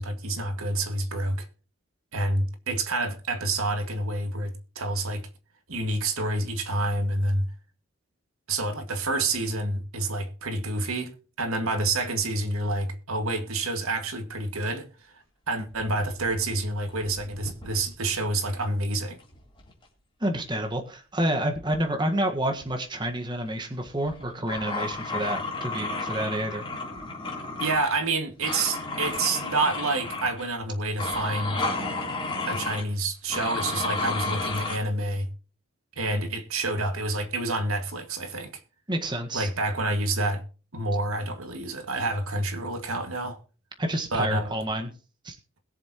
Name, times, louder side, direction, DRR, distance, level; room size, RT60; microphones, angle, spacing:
voice 1, 0.0-1.5 2.1-5.3 5.7-7.5 8.5-11.1 11.4-14.9 15.5-19.2 27.6-31.6 32.5-35.3 36.0-38.5 39.3-40.4 40.7-43.4 44.1-44.5, right 2 dB, 80° right, 2.1 m, -28 dB
sound 1, 15.7-16.6 16.9-17.9 19.3-19.8 21.5-21.8 22.4-22.7 23.1-23.2 24.0-28.1 28.4-30.6 31.0-32.8 33.3-34.8, left 3 dB, 20° left, 3.6 m, -32 dB
voice 2, 20.2-26.6 38.9-39.5 43.8-44.9 45.2-45.4, right 1 dB, 20° right, 1.6 m, -29 dB
21.0 x 7.2 x 3.0 m
head